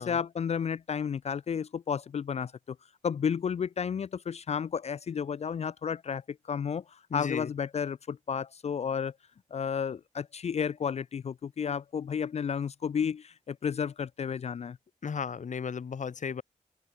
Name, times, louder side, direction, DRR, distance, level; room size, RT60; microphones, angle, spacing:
voice 1, 0.0-2.8 3.0-9.1 9.5-14.8, left 7 dB, 55° left, 0.4 m, -32 dB
voice 2, 7.1-7.5 15.0-16.4, left 6 dB, 70° left, 1.5 m, -35 dB
open air
wide cardioid pair, 95°, 13 cm